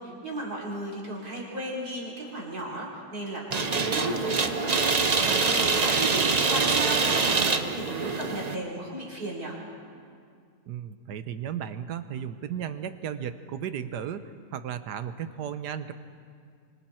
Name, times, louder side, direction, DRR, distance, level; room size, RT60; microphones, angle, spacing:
voice 1, 0.0-6.0 6.5-9.5, right 1 dB, 65° right, -4 dB, 5.0 m, -35 dB
sound 1, 3.5-8.5, right 4 dB, 35° right, 0.7 m, -24 dB
voice 2, 10.7-14.2 14.5-15.9, right 9 dB, 90° right, 11 dB, 1.5 m, -34 dB
26.0 x 25.5 x 4.4 m, 2.2 s
omnidirectional pair, 1.7 m